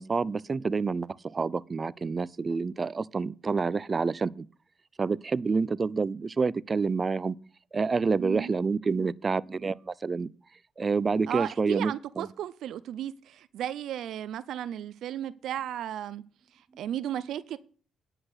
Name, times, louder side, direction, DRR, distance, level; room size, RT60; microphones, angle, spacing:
voice 1, 0.0-4.5 5.0-7.4 7.7-10.3 10.8-12.3, right 4 dB, 30° right, 0.5 m, -28 dB
voice 2, 8.2-8.5 11.3-16.2 16.5-17.6, right 11 dB, 75° right, 0.6 m, -35 dB
10.5 x 5.9 x 8.1 m
cardioid pair, 90°, 0 cm